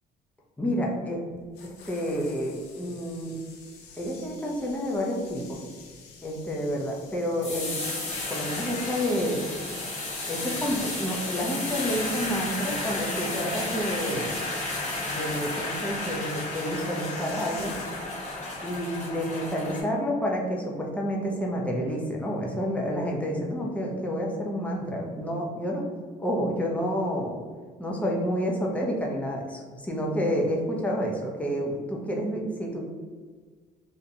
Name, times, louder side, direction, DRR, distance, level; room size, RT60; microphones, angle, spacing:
voice 1, 0.6-1.2 1.6-3.4 4.0-5.6 6.2-7.7 8.3-9.4 10.3-14.4 15.1-17.7 18.6-25.8 26.2-27.4 27.8-32.9, equal, 10° left, -2 dB, 0.5 m, -29 dB
sound 1, 1.3-18.2 18.5-18.8, left 5 dB, 85° left, 0.5 m, -50 dB
Pouring water into a hot saucepan, 7.4-19.8, left 2 dB, 45° left, 0.8 m, -33 dB
2.5 x 2.1 x 2.7 m, 1.5 s
cardioid pair, 110°, 17 cm